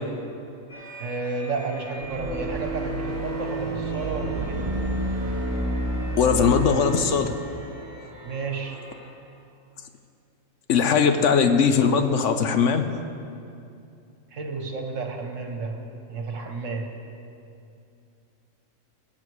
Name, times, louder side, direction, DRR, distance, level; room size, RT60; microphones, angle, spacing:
sound 1, 0.7-9.1, equal, 30° left, 3.2 m, -44 dB
voice 1, 1.0-4.7 8.2-8.9 14.3-16.9, right 4 dB, 65° right, 3 dB, 1.5 m, -32 dB
sound 2, 2.0-7.2, right 1 dB, 15° right, 1.0 m, -29 dB
voice 2, 6.2-7.4 10.7-12.9, left 6 dB, 65° left, 8 dB, 1.0 m, -20 dB
20.0 x 7.3 x 4.8 m, 2.6 s
omnidirectional pair, 1.4 m